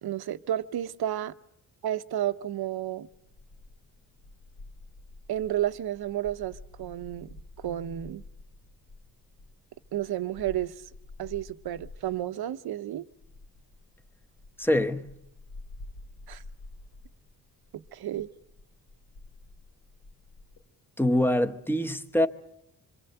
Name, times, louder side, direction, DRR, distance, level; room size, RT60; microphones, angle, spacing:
voice 1, 0.0-1.3 1.8-3.1 5.3-8.2 9.9-10.7 11.2-13.0 16.3-16.4 17.7-18.3, right 12 dB, 80° right, 0.9 m, -32 dB
sound 1, 3.1-12.2 13.1-20.6, left 2 dB, 85° left, 2.9 m, -49 dB
voice 2, 14.6-15.1 21.0-22.3, left 1 dB, 5° left, 1.0 m, -24 dB
26.5 x 23.5 x 7.9 m
wide cardioid pair, 125°, 37 cm